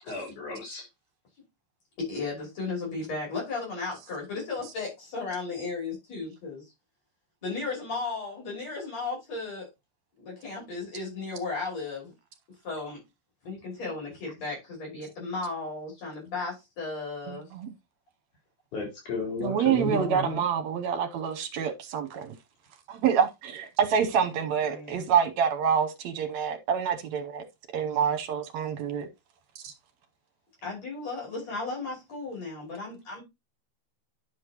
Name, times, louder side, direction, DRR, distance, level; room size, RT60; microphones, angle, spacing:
voice 1, 0.1-0.8 18.7-20.4, left 2 dB, 85° left, 5.6 m, -33 dB
voice 2, 2.0-6.6 7.4-9.7 10.2-12.1 12.6-13.0 13.4-17.4 24.6-25.1 30.6-33.2, left 3 dB, 60° left, 6.7 m, -35 dB
voice 3, 17.3-17.7 19.4-22.3 22.9-27.4 27.7-29.1 29.6-29.7, right 7 dB, 70° right, 2.1 m, -27 dB
10.0 x 6.3 x 3.0 m
omnidirectional pair, 3.4 m